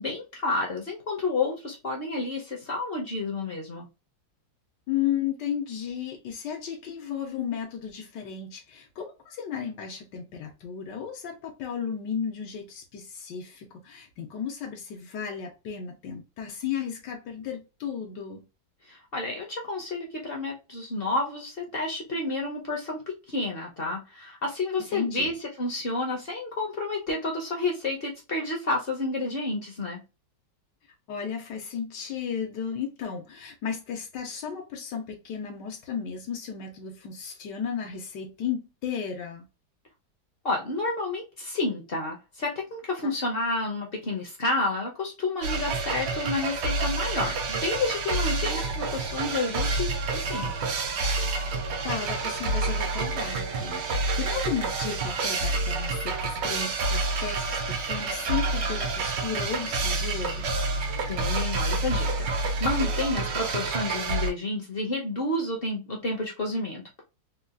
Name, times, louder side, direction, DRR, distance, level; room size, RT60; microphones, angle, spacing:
voice 1, 0.0-3.9 18.9-23.0 23.3-30.0 40.4-49.9 50.2-50.5 61.1-67.0, left 2 dB, 50° left, 0.7 m, -30 dB
voice 2, 4.9-18.4 24.9-25.3 31.1-39.5 51.8-60.5, left 8 dB, 80° left, 1.4 m, -34 dB
sound 1, 45.4-64.3, right 3 dB, 80° right, 1.4 m, -28 dB
3.7 x 2.3 x 2.3 m
omnidirectional pair, 1.9 m